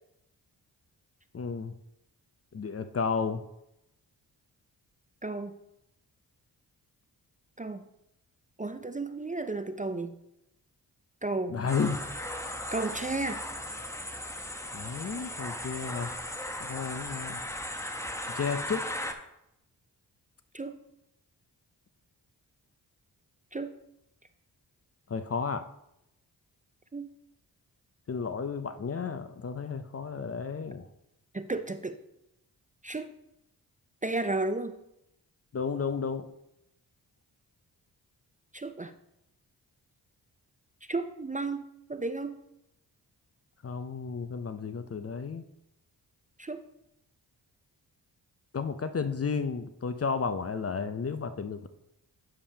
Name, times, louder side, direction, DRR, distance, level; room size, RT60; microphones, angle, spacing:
voice 1, 1.3-1.7 2.5-3.4 11.5-12.0 14.7-16.1 16.6-17.4 18.3-18.9 25.1-25.6 28.1-30.9 35.5-36.3 43.6-45.4 48.5-51.7, left 5 dB, 35° left, 11 dB, 0.6 m, -32 dB
voice 2, 5.2-5.6 7.6-7.8 8.6-10.2 11.2-11.6 12.7-13.4 20.5-20.8 23.5-23.7 26.9-27.1 31.3-32.0 32.8-33.1 34.0-34.8 38.5-38.9 40.9-41.6 41.9-42.4 46.4-46.7, right 2 dB, 20° right, 9 dB, 0.5 m, -33 dB
sound 1, 11.7-19.1, left 1 dB, 5° left, 0.9 m, -37 dB
8.8 x 7.1 x 2.8 m, 0.83 s
supercardioid pair, 40°, 44 cm